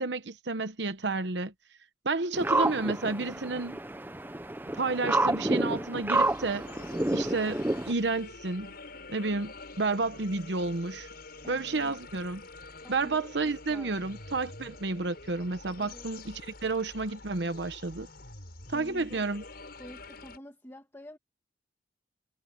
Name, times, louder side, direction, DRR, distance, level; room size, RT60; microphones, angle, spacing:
voice 1, 0.0-1.5 2.0-3.8 4.7-6.7 7.1-8.7 9.1-11.1 11.5-12.4 12.9-18.1 18.7-19.4, right 3 dB, 70° right, 1.0 m, -31 dB
sound 1, 2.3-7.9, right 2 dB, 10° right, 0.8 m, -29 dB
sound 2, 6.1-20.4, left 3 dB, 60° left, 7.2 m, -47 dB
voice 2, 11.4-12.0 12.8-14.0 15.8-16.1 18.7-19.3 19.8-21.2, equal, 15° left, 1.9 m, -48 dB
head